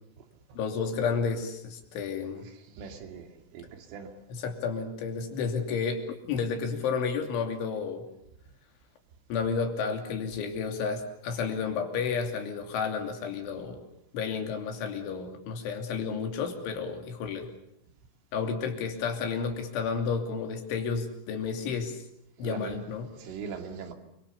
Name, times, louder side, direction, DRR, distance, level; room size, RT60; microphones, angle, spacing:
voice 1, 0.6-2.5 4.3-8.0 9.3-13.8 14.1-17.5 18.3-22.0 22.4-23.1, left 5 dB, 70° left, 5.1 m, -31 dB
voice 2, 2.7-3.3 3.5-4.1 22.4-22.8 23.2-23.9, right 5 dB, 75° right, 4.9 m, -40 dB
30.0 x 24.0 x 7.1 m
omnidirectional pair, 5.8 m